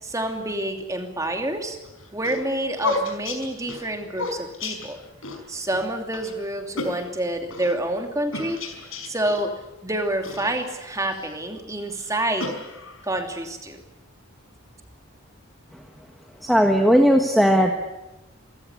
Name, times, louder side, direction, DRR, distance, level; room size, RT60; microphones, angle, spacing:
voice 1, 0.0-1.8 2.1-5.0 5.5-8.7 9.0-12.6 13.0-13.8, right 1 dB, 15° right, 4 dB, 2.8 m, -28 dB
sound 1, 1.8-5.4 5.7-5.8 6.1-6.3 6.8-7.7 8.3-9.5 10.2-11.4 11.9-13.1, left 3 dB, 75° left, 5.2 m, -32 dB
voice 2, 16.4-17.7, equal, ahead, 3 dB, 1.5 m, -17 dB
26.5 x 16.0 x 9.8 m, 0.99 s
head